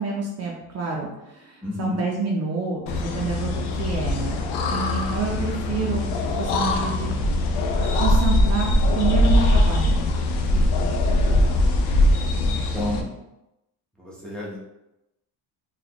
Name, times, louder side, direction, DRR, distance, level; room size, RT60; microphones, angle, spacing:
voice 1, 0.0-4.4 4.7-7.2 7.8-10.0, right 4 dB, 35° right, -2 dB, 0.6 m, -28 dB
voice 2, 1.6-2.0 10.5-10.7 11.2-11.5 12.4-13.1 14.0-14.6, left 1 dB, ahead, -6 dB, 0.8 m, -32 dB
sound 1, 2.9-13.0, left 1 dB, 70° left, 0.6 m, -21 dB
4.1 x 2.5 x 2.9 m, 0.92 s
cardioid pair, 140°, 42 cm